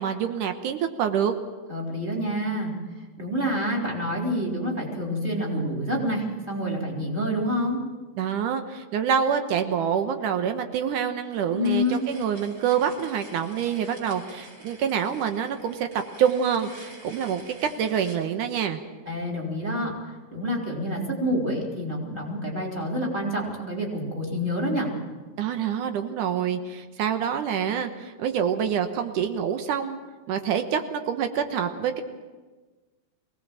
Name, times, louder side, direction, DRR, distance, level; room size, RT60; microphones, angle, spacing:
voice 1, 0.0-1.3 8.2-15.9 16.2-18.8 25.4-30.0 30.3-32.0, right 8 dB, 85° right, 7 dB, 2.7 m, -26 dB
voice 2, 1.7-2.7 3.2-7.8 11.5-12.0 19.1-24.9, equal, 15° right, -2 dB, 3.8 m, -28 dB
sound 1, 11.6-18.2, right 1 dB, 30° right, 4.9 m, -48 dB
23.5 x 18.0 x 7.5 m, 1.3 s
omnidirectional pair, 3.5 m